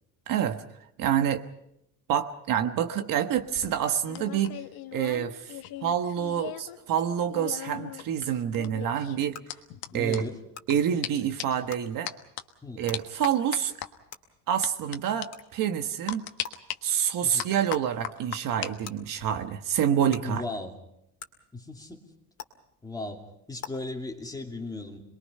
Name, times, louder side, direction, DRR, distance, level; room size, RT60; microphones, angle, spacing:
voice 1, 0.3-0.6 1.0-1.4 2.1-4.6 4.9-5.5 5.8-9.4 9.9-10.2 10.7-12.1 12.8-13.7 14.5-16.3 16.8-20.4, right 9 dB, 55° right, 7 dB, 1.4 m, -27 dB
sound 1, 3.3-6.8 7.0-10.7 11.0-11.1 11.4-11.7 12.1-12.4 12.9-13.9 14.6-15.0 15.2-15.3 16.1-16.8 17.4-18.7 19.0-19.4, left 12 dB, 65° left, 1.5 m, -38 dB
sound 2, 7.0-7.1 8.2-8.3 9.3-9.4 10.5-10.6 11.7-11.8 12.9-13.0 14.1-14.2 15.3-15.4 16.4-16.5 17.7-17.9 18.8-18.9 20.1-20.2 21.2-21.3 22.4-22.5 23.6-23.7, left 7 dB, 40° left, 2.2 m, -41 dB
voice 2, 9.9-10.4 10.9-11.0 12.6-12.9 17.2-17.5 20.2-20.7 21.5-22.0 22.8-25.0, left 2 dB, 10° left, 2 dB, 2.6 m, -37 dB
27.0 x 21.5 x 5.6 m, 0.79 s
cardioid pair, 150°, 39 cm